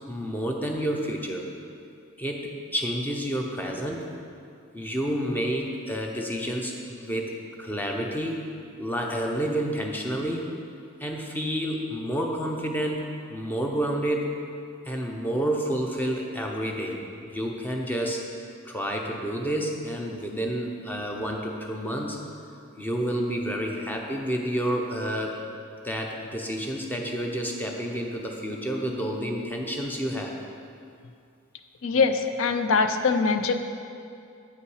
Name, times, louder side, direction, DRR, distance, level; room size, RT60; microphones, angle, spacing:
voice 1, 0.1-1.5 2.2-4.0 4.7-8.4 8.8-10.4 11.0-13.0 13.3-14.3 14.8-18.2 18.6-22.2 22.8-25.4 25.8-30.4, equal, 10° left, 1 dB, 0.6 m, -29 dB
voice 2, 31.8-33.6, left 4 dB, 75° left, 8 dB, 0.5 m, -23 dB
7.9 x 5.6 x 4.9 m, 2.4 s
head